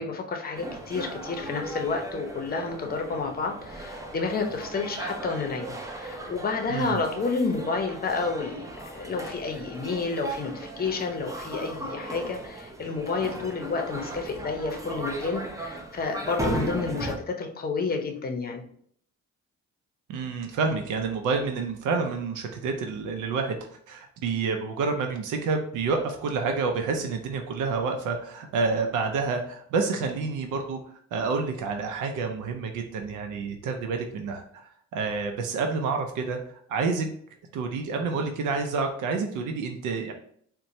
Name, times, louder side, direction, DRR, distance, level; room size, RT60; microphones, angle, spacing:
voice 1, 0.0-8.6 8.9-18.6, left 4 dB, 30° left, 3 dB, 0.7 m, -30 dB
sound 1, 0.5-17.2, right 1 dB, 10° right, 0.5 m, -37 dB
voice 2, 6.7-7.0 20.1-23.6 23.9-30.8 31.1-37.1 37.5-40.1, right 4 dB, 85° right, 4 dB, 0.5 m, -28 dB
4.1 x 2.2 x 2.6 m, 0.62 s
cardioid pair, 90°, 30 cm